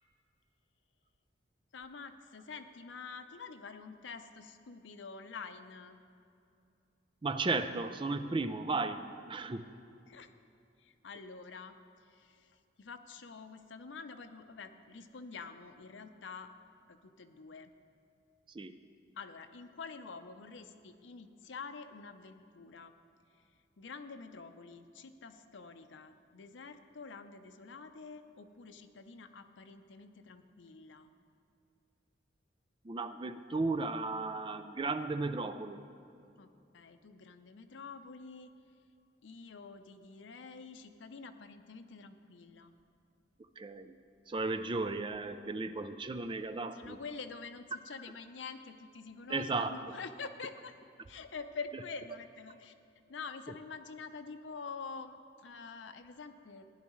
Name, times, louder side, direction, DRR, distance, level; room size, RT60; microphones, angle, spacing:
voice 1, 1.7-6.0 10.1-10.3 10.8-16.5 16.9-17.7 19.2-22.9 23.3-23.4 23.8-31.1 36.4-38.5 39.2-42.7 46.7-50.7 51.1-52.7 53.1-56.6, left 4 dB, 80° left, 8 dB, 0.6 m, -47 dB
voice 2, 7.2-9.7 18.5-18.7 32.8-35.8 43.6-44.0 44.3-47.0 49.3-49.8, right 3 dB, 25° right, 10 dB, 0.4 m, -35 dB
15.5 x 10.5 x 3.1 m, 2.5 s
head